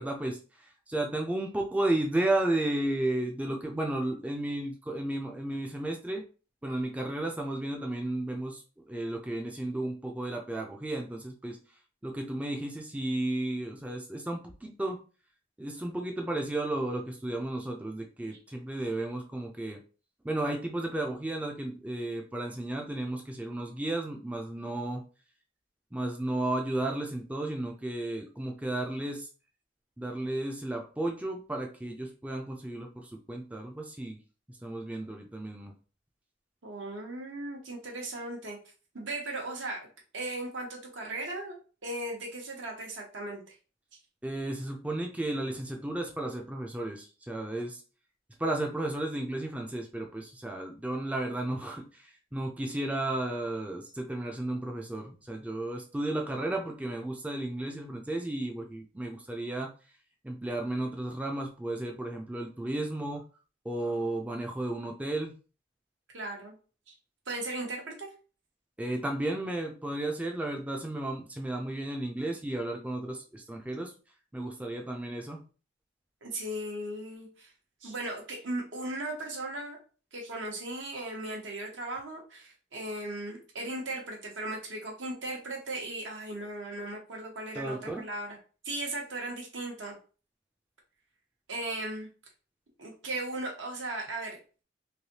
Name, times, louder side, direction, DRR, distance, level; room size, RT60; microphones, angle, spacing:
voice 1, 0.0-6.2 6.6-8.6 8.9-11.6 12.0-15.0 15.6-19.8 20.2-25.0 25.9-29.3 30.0-34.2 34.5-35.7 44.2-47.8 48.4-59.7 60.2-63.3 63.6-65.3 68.8-73.9 74.3-75.4 87.6-88.0, right 1 dB, 10° right, 1 dB, 0.3 m, -33 dB
voice 2, 36.6-38.6 38.9-39.9 40.1-41.6 41.8-43.5 66.1-66.5 66.9-67.0 67.3-68.1 76.2-77.5 77.8-79.8 80.1-88.4 88.6-90.0 91.5-92.1 92.8-94.4, right 2 dB, 80° right, 0 dB, 1.0 m, -37 dB
3.2 x 2.6 x 2.7 m, 0.36 s
head